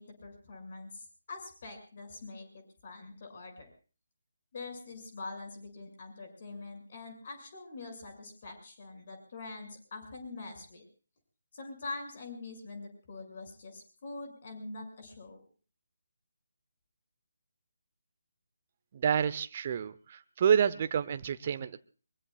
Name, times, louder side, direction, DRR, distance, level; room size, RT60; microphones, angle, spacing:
voice 1, 0.0-3.7 4.5-10.8 11.5-15.4, left 3 dB, 45° left, 5 dB, 6.6 m, -44 dB
voice 2, 18.9-21.8, right 8 dB, 35° right, 12 dB, 0.8 m, -28 dB
24.0 x 23.0 x 2.4 m, 0.38 s
figure-of-eight pair, 150°, 0 cm